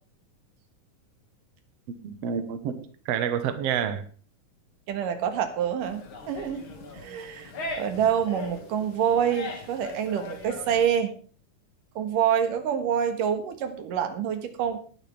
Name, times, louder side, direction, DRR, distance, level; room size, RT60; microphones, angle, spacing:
voice 1, 2.0-4.1, right 8 dB, 60° right, 8 dB, 2.0 m, -29 dB
voice 2, 4.9-6.0 6.3-6.7 7.0-11.1 12.0-14.8, right 8 dB, 90° right, 7 dB, 3.1 m, -26 dB
sound 1, 5.8-10.8, left 2 dB, 45° left, 2.5 m, -39 dB
19.5 x 10.0 x 3.4 m, 0.40 s
omnidirectional pair, 3.7 m